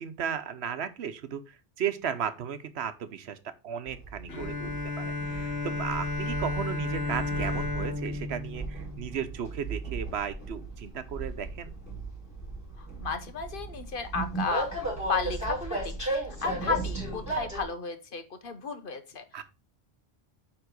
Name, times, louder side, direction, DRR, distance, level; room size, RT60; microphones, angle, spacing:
voice 1, 0.0-3.4 3.6-4.7 5.0-11.7 19.3-19.4, right 8 dB, 85° right, 11 dB, 1.1 m, -35 dB
Train, 3.9-17.6, right 2 dB, 15° left, 4.1 m, -36 dB
Bowed string instrument, 4.3-9.8, left 3 dB, 75° left, 1.5 m, -33 dB
voice 2, 12.8-19.4, left 5 dB, 55° left, 8 dB, 1.2 m, -34 dB
9.4 x 3.6 x 5.1 m, 0.29 s
omnidirectional pair, 1.1 m